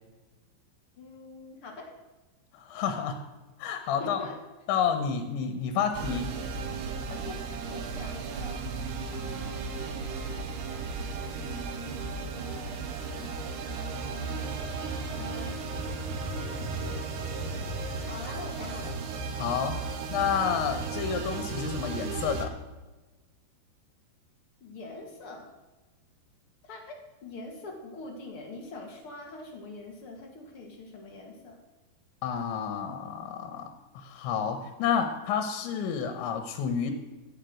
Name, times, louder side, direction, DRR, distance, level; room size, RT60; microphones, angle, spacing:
voice 1, 1.0-1.9 4.0-4.3 7.1-8.6 9.1-10.0 11.3-14.5 15.0-15.5 16.3-16.9 18.1-18.9 24.6-25.5 26.6-31.6, left 2 dB, 50° left, 1 dB, 1.8 m, -44 dB
voice 2, 2.5-3.2 3.6-4.2 4.7-6.3 19.4-19.8 20.1-22.5 32.2-33.7 33.9-36.9, left 7 dB, 90° left, 7 dB, 3.4 m, -30 dB
sound 1, 5.9-22.5, right 4 dB, 70° right, 3.0 m, -35 dB
Motorcycle, 14.3-22.0, equal, 55° right, 3.6 m, -42 dB
15.5 x 7.5 x 6.1 m, 1.1 s
omnidirectional pair, 5.2 m